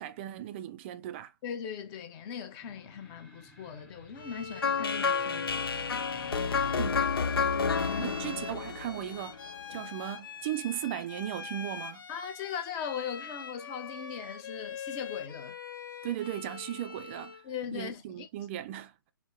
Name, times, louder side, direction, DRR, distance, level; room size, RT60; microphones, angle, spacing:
voice 1, 0.0-1.3 6.8-7.1 8.0-9.4 9.7-12.0 16.0-17.4 17.7-18.9, right 12 dB, 30° right, 0.4 m, -37 dB
voice 2, 1.4-5.7 7.5-8.2 9.7-9.8 12.1-15.6 17.4-18.3, left 7 dB, 25° left, 0.7 m, -39 dB
sound 1, 2.6-8.3, right 1 dB, 5° left, 1.2 m, -53 dB
Bowed string instrument, 4.1-17.5, left 6 dB, 60° left, 0.8 m, -43 dB
sound 2, 4.6-9.6, left 5 dB, 80° left, 0.4 m, -30 dB
3.2 x 2.1 x 3.0 m
figure-of-eight pair, 130°, 12 cm